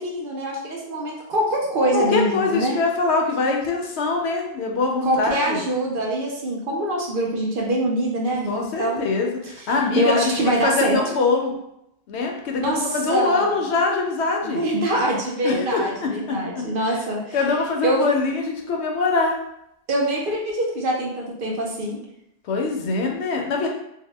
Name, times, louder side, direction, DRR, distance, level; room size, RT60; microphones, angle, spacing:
voice 1, 0.0-2.8 5.0-9.0 10.0-11.0 12.6-13.6 14.4-17.4 17.8-18.0 19.9-22.0, right 1 dB, 60° right, -2 dB, 0.7 m, -24 dB
voice 2, 1.9-5.6 8.5-11.5 12.1-14.6 15.4-17.0 17.3-19.4 22.4-23.7, left 3 dB, 80° left, 1 dB, 0.9 m, -23 dB
2.7 x 2.1 x 3.2 m, 0.81 s
omnidirectional pair, 1.1 m